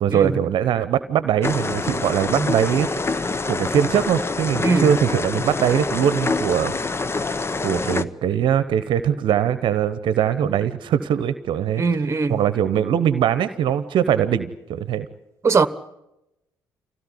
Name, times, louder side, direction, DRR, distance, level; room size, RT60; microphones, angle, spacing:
voice 1, 0.0-2.9 3.2-6.7 7.6-11.8 12.3-15.1, right 9 dB, 60° right, 1.0 m, -21 dB
sound 1, 1.4-8.0, left 3 dB, 25° left, 1.0 m, -26 dB
voice 2, 11.8-12.4 15.4-15.7, right 4 dB, 30° right, 1.3 m, -20 dB
25.0 x 17.0 x 9.8 m
hypercardioid pair, 50°, 9 cm